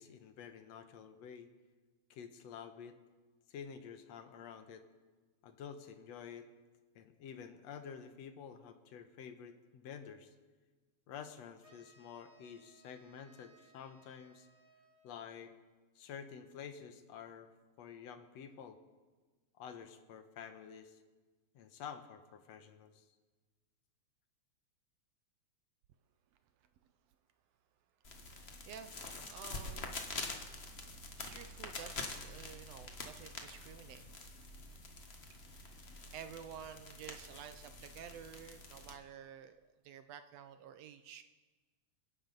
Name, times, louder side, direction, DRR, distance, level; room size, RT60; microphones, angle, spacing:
voice 1, 0.0-1.5 2.1-3.0 3.5-4.8 5.4-6.5 7.0-10.3 11.1-14.5 15.0-15.6 16.0-18.8 19.6-21.0 21.5-23.1, left 7 dB, 70° left, 8 dB, 2.0 m, -50 dB
sound 1, 11.6-15.3, right 2 dB, 25° right, 3.6 m, -66 dB
sound 2, 28.0-38.9, left 3 dB, 45° left, 0.8 m, -46 dB
voice 2, 28.2-30.1 31.2-34.1 35.5-35.8 36.1-39.6 39.8-41.2, right 8 dB, 75° right, 9 dB, 1.6 m, -51 dB
30.0 x 11.0 x 3.9 m, 1.3 s
omnidirectional pair, 3.3 m